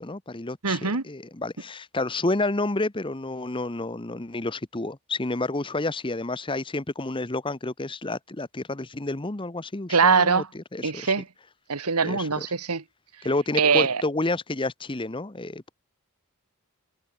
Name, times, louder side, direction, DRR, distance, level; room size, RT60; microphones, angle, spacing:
voice 1, 0.0-11.1 12.0-12.5 13.2-15.7, left 2 dB, 20° left, 0.9 m, -30 dB
voice 2, 0.6-1.0 9.9-10.5 10.8-11.2 11.7-12.8 13.6-14.0, right 5 dB, 90° right, 1.6 m, -22 dB
head